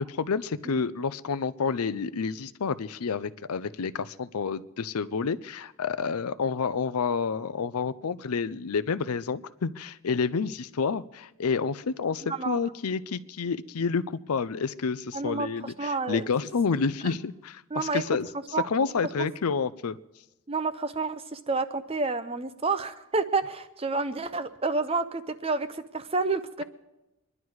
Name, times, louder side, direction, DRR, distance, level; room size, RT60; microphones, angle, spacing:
voice 1, 0.0-18.3 18.7-20.0, left 5 dB, 90° left, 15 dB, 0.5 m, -29 dB
voice 2, 12.2-12.6 15.1-16.2 17.7-18.0 18.5-18.7 20.5-26.6, right 3 dB, 25° right, 11 dB, 0.7 m, -29 dB
25.5 x 11.0 x 4.7 m, 0.99 s
head